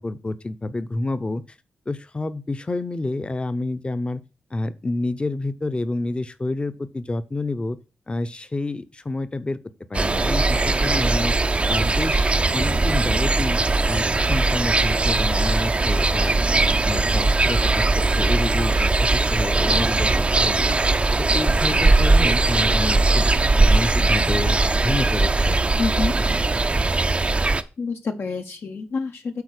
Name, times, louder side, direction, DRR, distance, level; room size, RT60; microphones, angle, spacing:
voice 1, 0.0-1.4 1.9-4.2 4.5-7.8 8.1-9.6 9.9-11.3 11.7-13.6 13.9-16.4 16.8-20.8 21.2-23.3 23.6-24.6 24.8-25.6, left 2 dB, 25° left, 0.7 m, -28 dB
sound 1, 9.9-27.6, right 3 dB, 25° right, 0.5 m, -20 dB
voice 2, 25.8-26.1 27.8-29.4, left 4 dB, 60° left, 0.8 m, -27 dB
8.4 x 4.1 x 6.5 m
wide cardioid pair, 105°, 4 cm